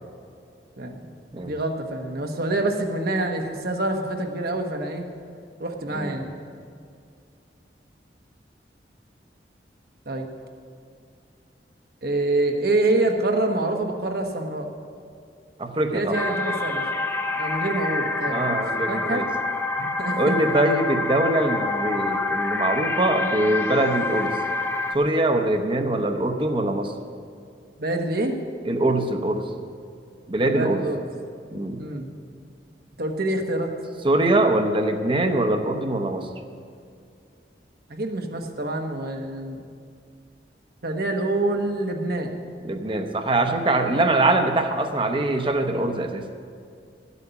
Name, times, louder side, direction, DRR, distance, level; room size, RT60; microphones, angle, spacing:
voice 1, 0.8-1.1 1.4-5.1 5.6-6.3 10.1-10.3 12.0-14.7 15.8-16.8 17.4-18.6 18.9-19.2 20.0-20.3 27.8-28.4 30.5-31.0 31.8-32.1 33.0-33.7 37.9-39.6 40.8-42.3 43.9-44.0, right 2 dB, 60° right, 4 dB, 1.3 m, -26 dB
voice 2, 15.6-16.2 18.3-19.3 19.8-24.4 24.9-26.9 28.6-29.5 30.3-30.9 31.5-31.8 34.0-36.3 42.6-46.2, right 2 dB, 30° right, 6 dB, 0.8 m, -23 dB
sound 1, 16.1-24.9, left 3 dB, 15° left, 0.7 m, -27 dB
13.0 x 8.3 x 7.0 m, 2.3 s
head